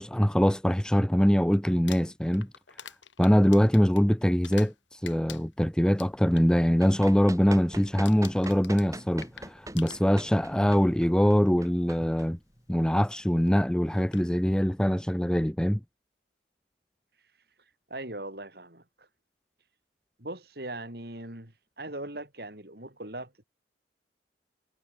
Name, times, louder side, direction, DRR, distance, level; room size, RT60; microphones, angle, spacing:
voice 1, 0.0-2.5 3.2-4.7 5.0-12.4 12.7-15.8, equal, 5° left, 0.6 m, -23 dB
Crumpling crinkling, 1.7-4.8 5.0-6.5 6.8-7.1 7.4-7.7 8.0-10.4 11.4-11.5 13.5-13.6 14.0-14.3, left 9 dB, 85° left, 4.3 m, -47 dB
Run, 6.7-12.9, right 1 dB, 15° right, 6.2 m, -43 dB
voice 2, 17.9-19.1 20.2-23.4, right 1 dB, 55° right, 4.3 m, -40 dB
head